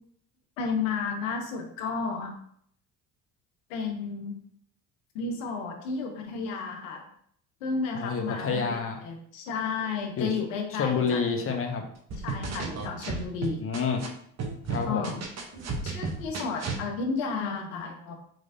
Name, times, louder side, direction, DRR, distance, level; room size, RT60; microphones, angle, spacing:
voice 1, 0.6-2.3 3.7-4.4 5.1-7.0 7.6-11.2 12.1-13.7 14.9-15.2 15.8-18.1, left 5 dB, 85° left, 3 dB, 0.8 m, -32 dB
voice 2, 7.9-9.0 10.2-10.3 10.8-11.8 13.6-14.0 14.7-15.2, left 5 dB, 35° left, 4 dB, 0.8 m, -28 dB
sound 1, 12.1-14.1 14.4-16.8, right 4 dB, 45° right, 0.8 m, -33 dB
3.9 x 3.1 x 2.6 m, 0.65 s
hypercardioid pair, 70°, 38 cm